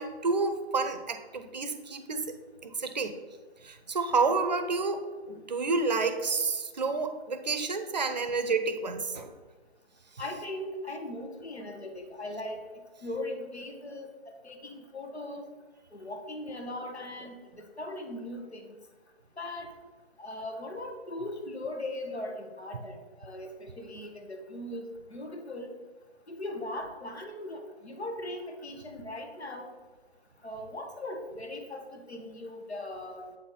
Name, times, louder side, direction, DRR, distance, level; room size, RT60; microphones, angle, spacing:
voice 1, 0.0-2.4 2.6-3.1 3.6-9.3, right 4 dB, 40° right, 10 dB, 0.6 m, -29 dB
voice 2, 10.2-14.1 14.4-15.4 15.9-18.8 19.4-19.7 20.2-25.7 26.3-29.7 30.4-33.2, left 1 dB, 80° left, 3 dB, 1.3 m, -39 dB
8.0 x 4.1 x 3.8 m, 1.4 s
figure-of-eight pair, 150°, 32 cm